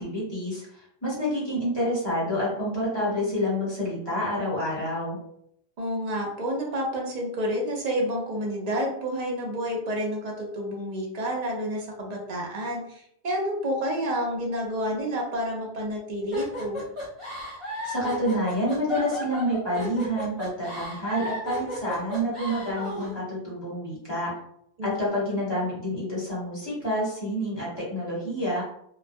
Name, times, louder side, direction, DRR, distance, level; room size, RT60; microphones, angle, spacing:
voice 1, 0.0-5.2 17.8-24.3 24.8-28.6, equal, 25° left, -7 dB, 1.1 m, -28 dB
voice 2, 5.8-16.8 24.8-25.0, equal, 50° right, -1 dB, 0.5 m, -29 dB
sound 1, 16.3-23.1, left 1 dB, 30° right, 1.1 m, -34 dB
2.3 x 2.1 x 2.5 m, 0.71 s
omnidirectional pair, 1.1 m